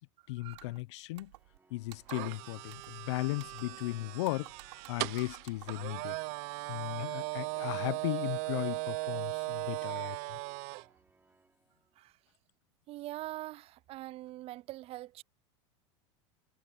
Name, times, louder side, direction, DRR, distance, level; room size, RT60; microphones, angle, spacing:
voice 1, 0.3-1.3 1.7-4.5 4.9-6.2 6.7-10.2, left 20 dB, 75° left, 1.1 m, -36 dB
Pushing hard buttons, 0.5-0.8 1.2-1.6 1.9-2.4 2.7-3.0 3.3-3.9 4.2-5.9, right 18 dB, 75° right, 4.5 m, -55 dB
Organ, 1.3-12.3, right 3 dB, 15° right, 4.9 m, -69 dB
sound 1, 2.1-10.8, right 25 dB, 60° right, 0.9 m, -38 dB
voice 2, 12.9-15.2, right 16 dB, 40° right, 0.4 m, -43 dB
hypercardioid pair, 105°, 15 cm